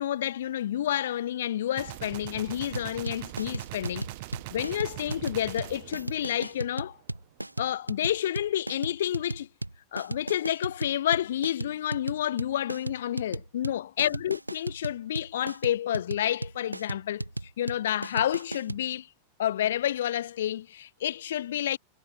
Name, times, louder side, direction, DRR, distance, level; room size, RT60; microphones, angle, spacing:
voice 1, 0.0-4.1 4.5-7.0 7.6-9.5 9.9-17.2 17.6-19.1 19.4-21.8, left 11 dB, 60° left, 1.5 m, -29 dB
Gunshot gunfire, 1.8-7.0, right 22 dB, 50° right, 6.6 m, -41 dB
sound 1, 2.7-18.8, right 1 dB, 85° right, 4.7 m, -35 dB
figure-of-eight pair, 90°, 0 cm